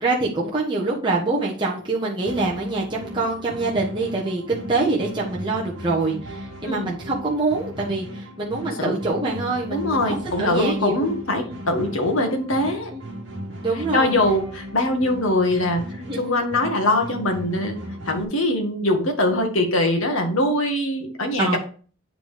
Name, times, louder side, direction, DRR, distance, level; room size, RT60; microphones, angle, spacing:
voice 1, 0.0-11.1 11.4-11.6 12.9-13.0 13.6-14.1 15.8-16.3 21.4-21.6, right 3 dB, 20° right, -4 dB, 1.4 m, -25 dB
sound 1, 2.2-18.2, equal, 60° right, 2.2 m, -37 dB
voice 2, 9.7-12.9 13.9-15.8 16.2-17.8 18.1-21.6, left 1 dB, 80° left, 3 dB, 1.6 m, -22 dB
8.8 x 5.1 x 3.6 m, 0.39 s
head